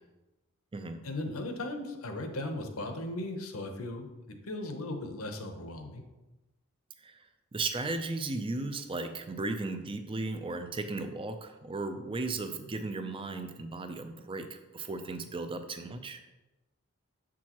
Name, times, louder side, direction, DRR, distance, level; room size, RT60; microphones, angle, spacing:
voice 1, 1.0-6.0, left 1 dB, 75° left, 5 dB, 0.9 m, -37 dB
voice 2, 7.5-16.2, right 3 dB, 25° right, 8 dB, 0.5 m, -36 dB
7.2 x 6.1 x 3.0 m, 1.1 s
head